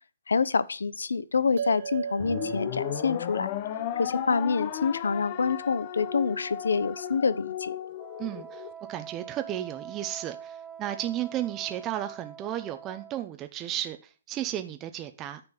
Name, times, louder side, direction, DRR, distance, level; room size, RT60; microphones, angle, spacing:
voice 1, 0.3-3.5 4.0-7.8, left 5 dB, 85° left, 0.8 m, -27 dB
sound 1, 1.6-6.3, right 7 dB, 60° right, 1.6 m, -40 dB
sound 2, 2.2-8.7, left 11 dB, 35° left, 0.7 m, -35 dB
Wind instrument woodwind instrument, 8.0-13.2, right 8 dB, 5° left, 1.0 m, -44 dB
voice 2, 8.2-8.6 8.9-14.0 14.3-15.4, right 12 dB, 20° right, 0.8 m, -33 dB
9.7 x 4.5 x 7.1 m
hypercardioid pair, 150°, 0 cm